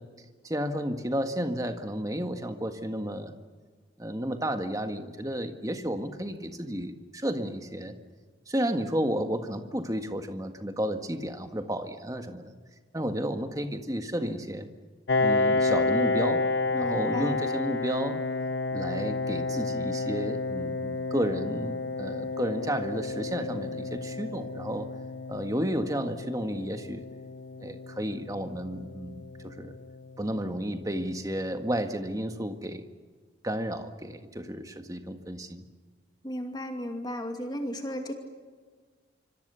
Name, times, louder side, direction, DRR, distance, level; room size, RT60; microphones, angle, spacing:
voice 1, 0.4-3.3 4.0-7.9 8.5-12.5 12.9-14.7 15.2-16.4 16.8-18.2 18.7-24.9 25.3-27.0 27.6-29.8 30.2-32.8 33.4-35.6, equal, 20° right, 6 dB, 1.7 m, -32 dB
Piano, 15.1-30.4, left 3 dB, 60° left, 0.6 m, -31 dB
voice 2, 16.7-17.4 36.2-38.1, equal, 20° left, 4 dB, 2.5 m, -34 dB
27.0 x 25.5 x 7.0 m, 1.5 s
head